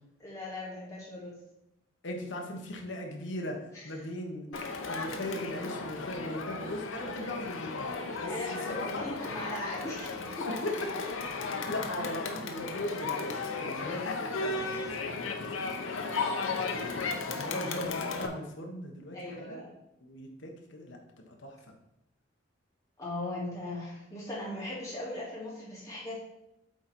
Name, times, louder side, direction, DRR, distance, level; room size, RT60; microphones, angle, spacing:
voice 1, 0.2-1.3 3.7-3.8 4.5-4.6 8.2-10.1 10.4-10.5 14.7-15.0 17.5-17.6 19.1-19.7 23.0-26.2, left 1 dB, 15° left, -7 dB, 2.4 m, -39 dB
voice 2, 2.0-4.5 4.8-9.0 10.5-11.1 11.7-15.4 16.0-19.7 20.0-21.6, left 1 dB, 70° left, 2 dB, 1.2 m, -39 dB
Crowd, 4.5-18.3, left 4 dB, 85° left, 0.8 m, -35 dB
7.8 x 3.9 x 4.5 m, 0.84 s
head